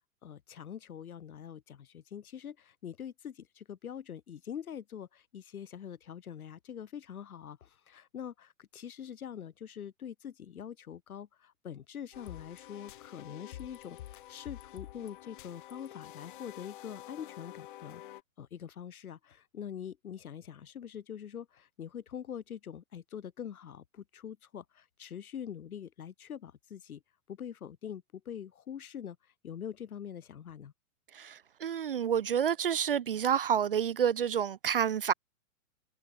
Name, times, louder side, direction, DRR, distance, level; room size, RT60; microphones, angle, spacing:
voice 1, 0.2-18.0 18.4-27.0 27.3-29.2 29.4-30.7, left 9 dB, 90° left, 3.6 m, -44 dB
sound 1, 12.1-18.2, left 14 dB, 35° left, 2.6 m, -48 dB
voice 2, 31.2-35.1, right 8 dB, 40° right, 0.5 m, -29 dB
hypercardioid pair, 180°, 42 cm